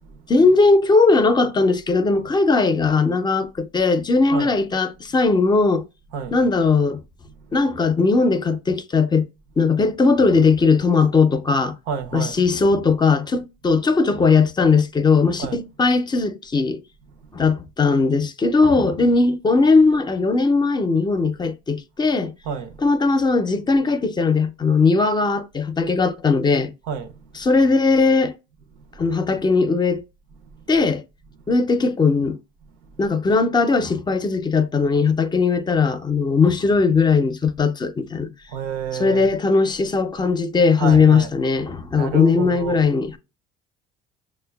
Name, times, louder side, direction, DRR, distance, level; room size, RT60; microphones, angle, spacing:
voice 1, 0.3-5.8 6.3-7.0 7.5-9.3 9.6-11.7 12.1-16.8 17.3-22.3 22.8-26.7 27.4-28.3 29.0-30.0 30.7-31.0 31.5-32.4 33.0-38.3 38.9-43.2, left 4 dB, 25° left, 0.5 m, -18 dB
voice 2, 11.9-12.4 15.4-15.6 22.4-22.8 26.9-27.3 38.5-39.3 40.8-41.3 42.0-42.9, right 7 dB, 85° right, 0.6 m, -29 dB
6.1 x 2.1 x 2.2 m
supercardioid pair, 95°, 18 cm